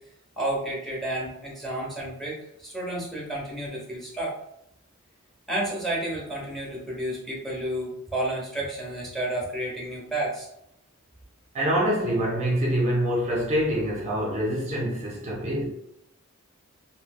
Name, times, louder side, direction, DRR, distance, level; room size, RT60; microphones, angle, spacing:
voice 1, 0.4-4.3 5.5-10.5, right 1 dB, ahead, 0.8 m, -31 dB
voice 2, 11.5-15.7, equal, 30° right, 0.5 m, -25 dB
3.0 x 2.7 x 2.2 m
head